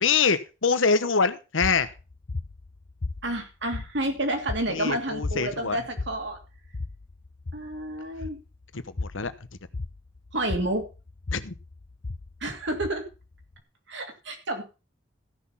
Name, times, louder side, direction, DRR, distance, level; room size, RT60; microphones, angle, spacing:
voice 1, 0.0-1.9 4.7-5.8 9.0-9.3 11.3-11.5, left 5 dB, 85° left, 13 dB, 1.1 m, -24 dB
sound 1, 1.6-13.6, left 3 dB, 55° left, 0.8 m, -37 dB
voice 2, 3.2-6.4 7.5-8.4 10.3-10.9 12.4-13.0 13.9-14.6, right 1 dB, 65° right, 5 dB, 2.8 m, -30 dB
14.5 x 6.2 x 5.7 m, 0.31 s
head